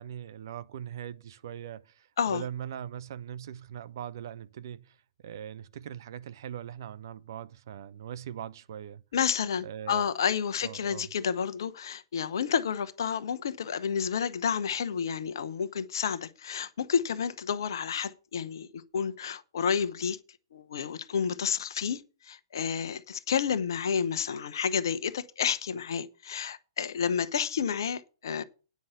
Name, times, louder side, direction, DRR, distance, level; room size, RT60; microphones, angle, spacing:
voice 1, 0.0-5.0 5.2-9.0 9.6-10.1 10.6-11.1, right 10 dB, 60° right, 0.7 m, -41 dB
voice 2, 9.1-20.2 20.5-28.4, left 7 dB, 65° left, 0.9 m, -30 dB
9.4 x 5.6 x 8.0 m
hypercardioid pair, 115°, 2 cm